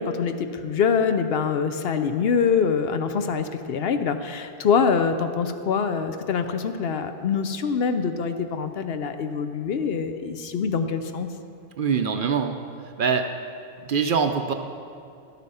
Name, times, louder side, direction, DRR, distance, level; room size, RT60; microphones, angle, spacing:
voice 1, 0.0-11.3, left 6 dB, 65° left, 9 dB, 0.8 m, -24 dB
voice 2, 11.8-12.6 13.0-13.3 13.8-14.5, right 6 dB, 55° right, 6 dB, 0.7 m, -23 dB
12.0 x 8.2 x 5.5 m, 2.5 s
omnidirectional pair, 1.2 m